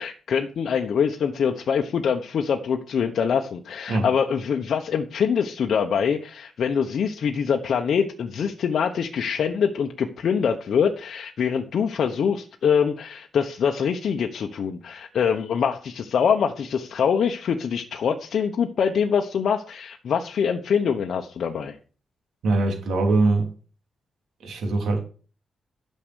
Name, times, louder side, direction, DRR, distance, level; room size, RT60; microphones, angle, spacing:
voice 1, 0.0-21.8, left 7 dB, 60° left, 1.1 m, -24 dB
voice 2, 22.4-23.5 24.4-25.0, right 3 dB, 90° right, 3.7 m, -22 dB
12.5 x 6.6 x 6.4 m
wide cardioid pair, 160°, 0 cm